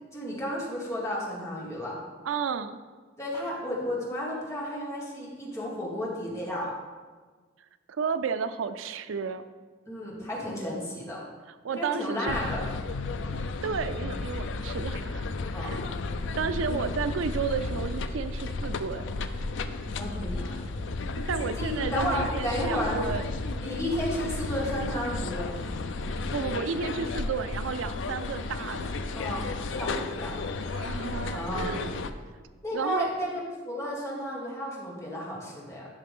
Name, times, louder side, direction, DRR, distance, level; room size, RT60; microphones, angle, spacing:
voice 1, 0.1-2.0 3.2-6.7 9.9-11.2 11.7-12.6 15.5-15.8 19.9-20.7 21.6-23.0 23.6-25.6 29.1-30.4 31.3-31.8 32.6-33.3 33.6-35.9, equal, 15° left, -5 dB, 1.9 m, -33 dB
voice 2, 2.2-2.8 7.9-9.4 11.5-12.4 13.6-15.2 16.4-19.1 21.2-23.2 26.1-28.9 30.7-32.0 32.7-33.1, right 5 dB, 85° right, 11 dB, 0.4 m, -32 dB
sound 1, 12.3-32.1, left 3 dB, 70° left, 0.5 m, -33 dB
11.5 x 5.7 x 3.7 m, 1.4 s
head